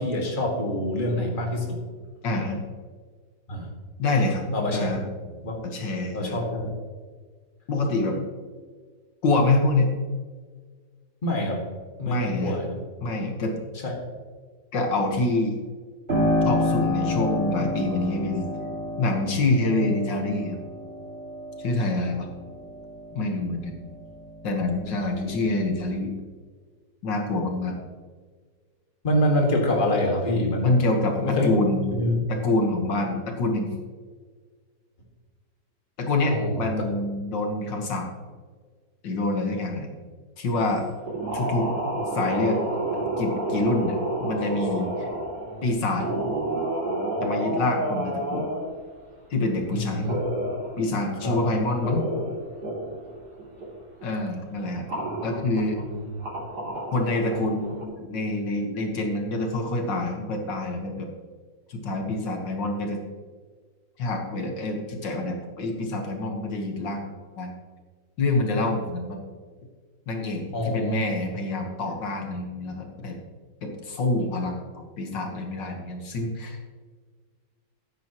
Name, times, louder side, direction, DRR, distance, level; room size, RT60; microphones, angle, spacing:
voice 1, 0.0-1.8 3.5-3.7 4.5-4.9 5.4-5.6 6.1-6.7 11.2-11.7 12.0-12.8 13.8-13.9 29.0-30.8 31.2-31.5 32.0-32.2 36.3-36.7 49.7-50.1 51.2-51.4 55.9-56.1 70.5-71.0, left 1 dB, 30° left, 0 dB, 2.0 m, -25 dB
voice 2, 2.2-2.6 4.0-4.4 4.7-5.0 5.6-6.3 7.7-8.2 9.2-9.9 12.0-12.5 13.0-13.5 14.7-15.6 16.4-18.5 19.0-20.6 21.6-22.3 23.1-23.7 24.4-26.1 27.0-27.8 30.6-31.9 32.3-33.7 36.0-38.1 39.0-39.9 40.4-40.8 41.3-41.7 42.1-42.6 43.2-44.0 44.2-45.1 45.6-46.1 47.2-48.5 49.3-50.0 50.8-52.1 54.0-54.9 55.2-55.8 56.9-61.1 61.7-63.0 64.0-67.1 67.4-67.5 68.2-69.2 70.1-73.2 73.6-76.6, left 2 dB, 75° left, 2 dB, 2.1 m, -26 dB
Piano, 16.1-24.5 24.9-26.0, left 1 dB, 35° right, 2.3 m, -29 dB
sound 1, 41.1-45.7 46.0-48.7 50.0-50.8 51.3-51.4 51.6-53.1 53.4-53.7 54.0-54.1 54.9-55.8 56.2-57.8, right 1 dB, 60° right, 3.5 m, -30 dB
14.0 x 9.8 x 3.0 m, 1.5 s
omnidirectional pair, 2.0 m